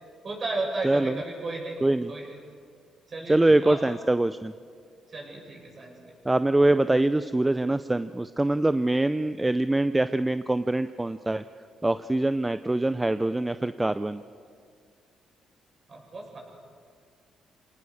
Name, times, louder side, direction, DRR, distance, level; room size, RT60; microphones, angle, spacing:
voice 1, 0.2-1.8 2.1-2.3 3.1-3.8 5.1-6.1 15.9-16.4, right 2 dB, 40° right, -1 dB, 8.0 m, -34 dB
voice 2, 1.8-2.1 3.3-4.5 6.2-11.4 11.8-14.2, right 2 dB, 15° right, 12 dB, 0.5 m, -24 dB
28.0 x 18.5 x 6.7 m, 2.1 s
cardioid pair, 90°, 0 cm